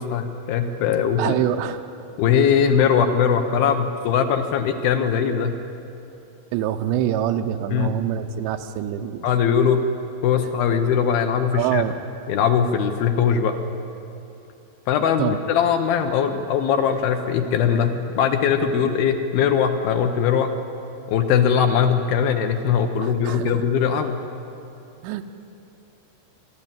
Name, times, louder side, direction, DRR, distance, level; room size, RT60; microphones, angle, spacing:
voice 1, 0.0-1.3 2.2-5.6 7.7-7.9 9.2-9.8 10.2-11.8 12.3-13.6 14.9-20.5 21.1-24.2, left 7 dB, 75° left, 7 dB, 2.5 m, -20 dB
voice 2, 1.2-1.8 6.5-9.3 11.5-12.0 15.2-15.4 23.0-23.6 25.0-25.2, right 11 dB, 85° right, 7 dB, 3.0 m, -25 dB
26.0 x 12.0 x 9.0 m, 2.8 s
omnidirectional pair, 5.0 m